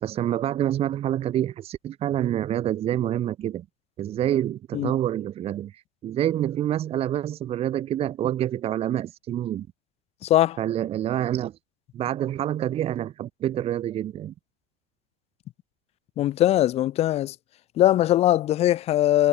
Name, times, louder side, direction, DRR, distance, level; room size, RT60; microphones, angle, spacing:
voice 1, 0.0-3.7 4.0-5.7 6.0-9.7 10.6-11.5 11.9-14.3, right 11 dB, 35° right, 0.8 m, -27 dB
voice 2, 10.2-10.6 16.2-17.3 17.8-19.3, left 13 dB, 40° left, 0.5 m, -21 dB
hypercardioid pair, 90°, 17 cm